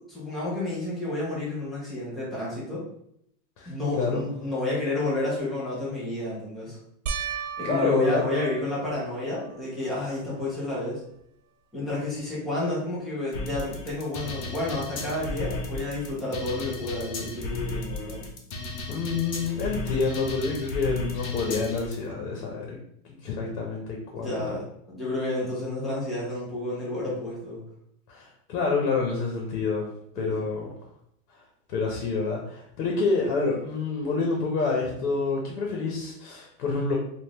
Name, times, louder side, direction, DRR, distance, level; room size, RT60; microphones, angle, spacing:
voice 1, 0.0-2.8 3.7-6.8 7.6-11.0 11.7-18.2 24.1-27.6 30.2-30.5, left 2 dB, ahead, -9 dB, 0.6 m, -30 dB
voice 2, 3.6-4.3 7.6-8.2 18.9-22.8 23.0-24.5 28.1-29.9 30.1-30.7 31.7-36.9, left 4 dB, 85° left, -1 dB, 1.0 m, -28 dB
sound 1, 7.1-9.7 10.3-10.8 11.2-11.3 14.5-14.6, right 6 dB, 80° right, 0.5 m, -36 dB
sound 2, 13.3-21.9, left 2 dB, 55° left, 0.9 m, -34 dB
3.5 x 2.5 x 2.9 m, 0.72 s
supercardioid pair, 160°, 45 cm